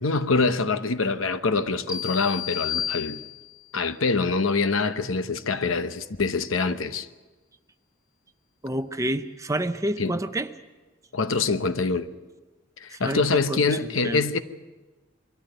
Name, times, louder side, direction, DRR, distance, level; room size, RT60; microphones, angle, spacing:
voice 1, 0.0-3.2 3.7-7.1 10.0-10.2 11.1-12.1 12.8-14.4, left 4 dB, 80° left, 0.9 m, -25 dB
sound 1, 1.9-3.7, left 11 dB, 15° left, 1.7 m, -32 dB
voice 2, 8.6-10.5 12.9-14.2, right 1 dB, 15° right, 0.7 m, -29 dB
23.0 x 13.5 x 9.2 m
head